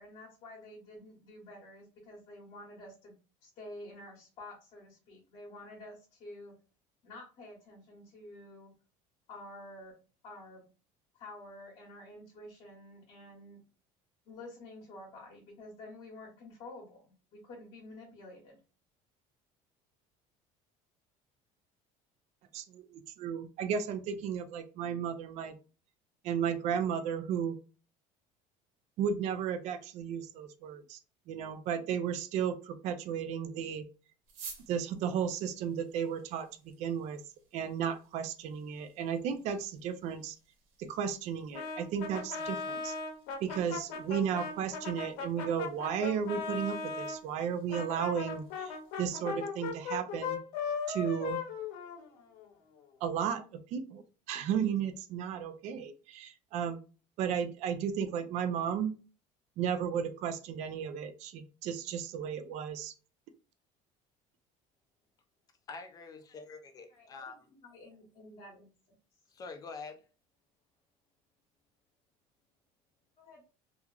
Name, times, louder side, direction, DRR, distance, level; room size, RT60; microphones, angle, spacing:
voice 1, 0.0-3.2 3.4-6.5 7.0-8.7 9.3-9.9 10.2-10.6 11.1-13.6 14.3-18.6 66.9-67.2 67.6-68.7 73.2-73.5, left 1 dB, 45° left, 0.9 m, -50 dB
voice 2, 22.5-25.5 26.2-27.5 29.0-31.0 31.3-33.8 34.7-36.5 36.8-37.2 37.5-40.4 40.8-42.9 43.4-50.4 50.9-51.4 53.0-53.4 53.7-56.8 57.2-58.9 59.6-62.9, right 8 dB, 50° right, 0.4 m, -34 dB
sound 1, 34.2-49.0, right 5 dB, 80° right, 1.1 m, -57 dB
Brass instrument, 41.5-47.2 47.7-52.5, left 5 dB, 75° left, 0.7 m, -38 dB
voice 3, 65.7-67.5 69.3-70.0, left 4 dB, 25° left, 0.4 m, -46 dB
2.9 x 2.4 x 2.3 m
cardioid pair, 150°, 14 cm